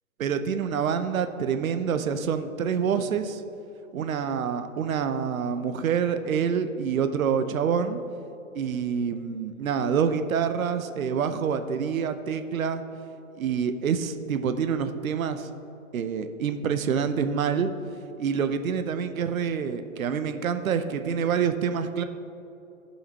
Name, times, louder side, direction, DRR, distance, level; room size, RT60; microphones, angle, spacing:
voice 1, 0.2-3.4 3.9-8.0 8.5-12.8 13.3-15.5 15.9-17.7 18.2-22.0, right 7 dB, 80° right, 10 dB, 0.7 m, -27 dB
15.5 x 5.6 x 2.9 m, 2.9 s
hypercardioid pair, 135°, 41 cm